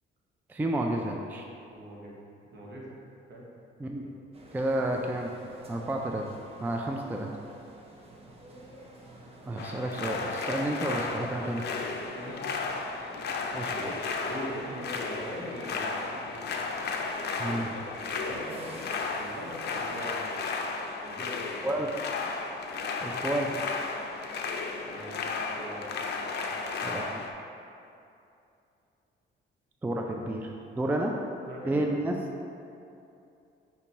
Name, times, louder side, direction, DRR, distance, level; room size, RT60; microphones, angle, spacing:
voice 1, 0.5-1.4 3.8-4.1 4.5-5.3 5.7-6.2 6.6-7.3 9.5-11.6 13.5-14.1 17.4-17.7 21.6-21.9 23.0-23.5 26.8-27.2 29.8-31.1 31.6-32.1, right 1 dB, 10° right, 1 dB, 0.3 m, -31 dB
voice 2, 1.7-2.2 2.5-2.9 3.3-3.4 11.3-11.8 12.1-12.5 13.7-16.2 17.3-18.7 19.1-20.2 21.1-21.7 24.9-25.9 26.4-26.6 31.4-31.9, equal, 60° right, -4 dB, 1.1 m, -42 dB
sound 1, 4.3-20.2, right 1 dB, 30° right, 0.7 m, -49 dB
sound 2, 9.6-27.3, left 4 dB, 55° left, 0.5 m, -34 dB
5.8 x 2.3 x 4.1 m, 2.7 s
cardioid pair, 90°, 20 cm